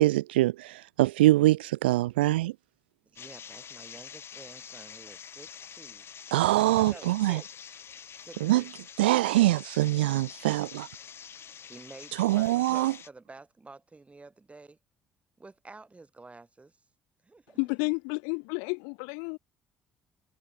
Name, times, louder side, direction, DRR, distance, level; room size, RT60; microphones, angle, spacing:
voice 1, 0.0-2.5 6.3-7.4 8.4-8.6 9.0-10.9 12.2-12.9, right 17 dB, 80° right, 0.3 m, -24 dB
voice 2, 3.1-6.1 6.8-7.7 8.1-8.7 11.5-14.8 15.4-16.8 17.2-17.6, right 3 dB, 25° right, 7.0 m, -50 dB
sound 1, 3.2-13.1, left 8 dB, 45° left, 2.9 m, -46 dB
voice 3, 17.6-19.4, left 40 dB or more, 70° left, 1.7 m, -31 dB
figure-of-eight pair, 50°, 6 cm